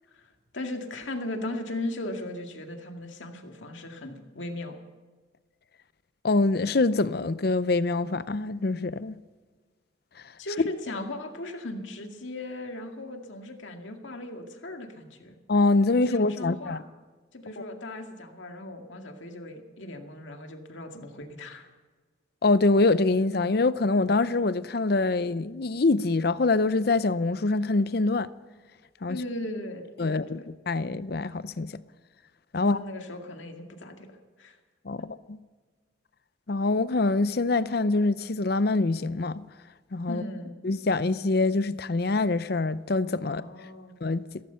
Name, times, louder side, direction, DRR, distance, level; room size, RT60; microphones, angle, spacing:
voice 1, 0.1-4.8 10.4-15.4 16.1-16.8 17.3-21.7 29.1-30.5 32.6-34.6 40.1-40.6 43.2-43.9, left 1 dB, 80° left, 2.1 m, -38 dB
voice 2, 6.2-9.2 15.5-16.8 22.4-28.3 29.0-29.2 30.0-31.7 32.5-32.8 34.8-35.4 36.5-39.4 39.9-40.2 40.6-43.4 44.0-44.2, left 3 dB, 55° left, 0.6 m, -25 dB
16.5 x 15.0 x 5.7 m
head